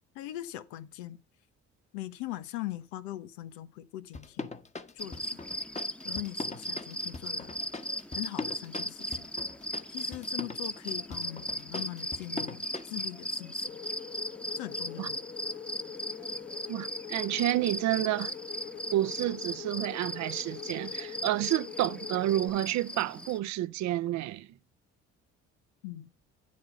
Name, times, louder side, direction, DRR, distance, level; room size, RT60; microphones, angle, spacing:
voice 1, 0.1-1.2 1.9-4.5 4.9-5.4 6.0-7.6 8.1-9.3 9.9-13.7 14.6-15.2 25.8-26.1, left 15 dB, 90° left, 1.1 m, -41 dB
sound 1, 4.1-13.0, left 3 dB, 25° left, 1.4 m, -41 dB
sound 2, 5.0-23.4, equal, 5° left, 1.1 m, -38 dB
sound 3, 13.6-22.5, left 8 dB, 40° left, 1.6 m, -44 dB
voice 2, 16.7-18.3 18.9-24.5, right 14 dB, 70° right, 0.7 m, -30 dB
9.7 x 8.6 x 3.6 m
supercardioid pair, 65°, 29 cm